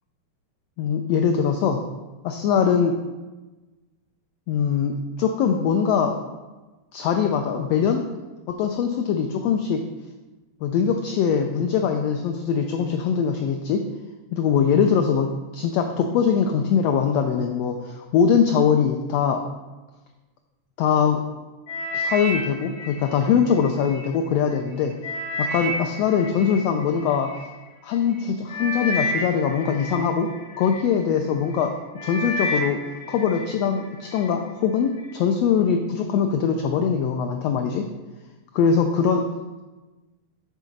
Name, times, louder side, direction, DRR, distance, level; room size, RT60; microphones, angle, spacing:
voice 1, 0.8-1.8 2.2-2.9 4.5-4.9 5.2-6.1 6.9-8.0 8.5-9.8 10.6-13.8 14.3-15.3 15.5-19.4 20.8-21.2 21.9-24.9 25.5-27.4 27.8-30.3 30.6-31.7 32.0-32.8 33.1-37.8 38.5-39.3, left 7 dB, 85° left, 4 dB, 1.4 m, -22 dB
sound 1, 21.7-24.0 24.5-27.4 28.1-28.2 28.5-30.9 31.4-31.7 32.0-33.5 33.8-34.3 34.9-35.0, left 1 dB, 55° left, 1.1 m, -30 dB
7.4 x 3.9 x 5.2 m, 1.2 s
omnidirectional pair, 3.4 m